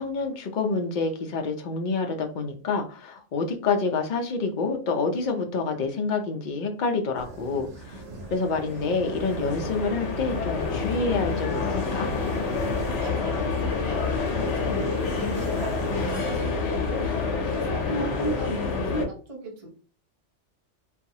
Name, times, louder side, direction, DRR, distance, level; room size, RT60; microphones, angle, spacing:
voice 1, 0.0-8.0 8.3-12.1, left 4 dB, 55° left, 3 dB, 0.6 m, -28 dB
sound 1, 7.2-16.8, right 2 dB, 65° right, 0.8 m, -40 dB
sound 2, 8.2-19.0, left 4 dB, 75° left, 1.0 m, -28 dB
voice 2, 12.8-17.1 17.5-19.7, right 1 dB, 35° right, -1 dB, 0.7 m, -36 dB
2.8 x 2.3 x 2.6 m, 0.38 s
omnidirectional pair, 1.2 m